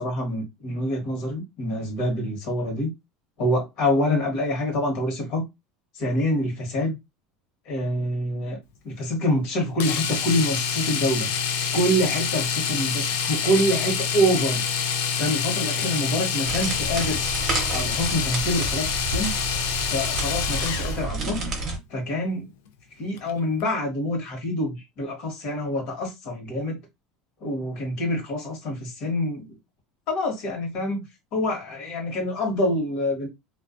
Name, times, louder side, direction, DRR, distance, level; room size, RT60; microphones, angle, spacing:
voice 1, 0.0-2.9 3.4-5.4 5.9-7.0 7.7-8.6 8.8-11.3 11.7-14.6 15.2-17.2 17.7-19.3 19.9-21.4 21.9-22.5 23.0-26.8 27.4-29.6 30.1-31.0 31.3-33.3, equal, 50° left, 1.2 m, -26 dB
Domestic sounds home sounds, 9.8-21.0 23.2-23.3 23.6-23.7, left 7 dB, 85° left, 0.4 m, -27 dB
sound 1, 16.4-21.8, right 2 dB, 35° right, 0.7 m, -30 dB
2.3 x 2.2 x 2.4 m
cardioid pair, 155°, 0 cm